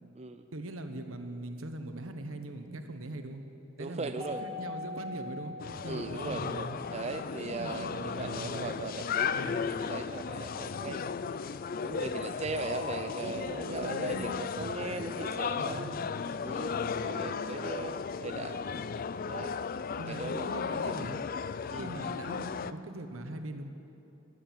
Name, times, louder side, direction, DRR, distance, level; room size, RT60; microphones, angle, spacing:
voice 1, 0.5-3.4 3.8-4.1 4.4-5.5 5.8-6.8 7.4-8.7 9.3-9.6 13.6-14.4 15.5-16.1 20.0-21.2 21.8-23.7, right 1 dB, 90° right, 6 dB, 1.2 m, -41 dB
voice 2, 3.8-4.7 5.9-11.0 11.8-16.0 16.4-18.6 19.3-19.5 20.1-21.0 21.7-21.9, right 3 dB, 30° right, 7 dB, 0.5 m, -39 dB
Mallet percussion, 4.2-6.6, left 3 dB, 20° left, 2.2 m, -42 dB
sound 1, 5.6-22.7, left 6 dB, 45° left, 0.4 m, -35 dB
15.5 x 11.5 x 7.6 m, 2.7 s
head